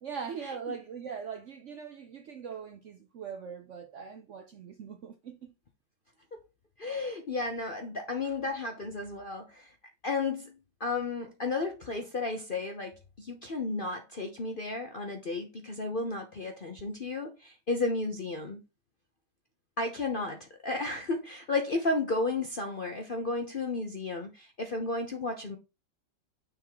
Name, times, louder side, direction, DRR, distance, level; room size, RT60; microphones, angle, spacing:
voice 1, 0.0-5.5, right 6 dB, 60° right, 0.8 m, -41 dB
voice 2, 6.8-9.7 10.0-18.6 19.8-25.6, left 3 dB, 45° left, 0.7 m, -33 dB
6.6 x 3.6 x 4.7 m
omnidirectional pair, 1.9 m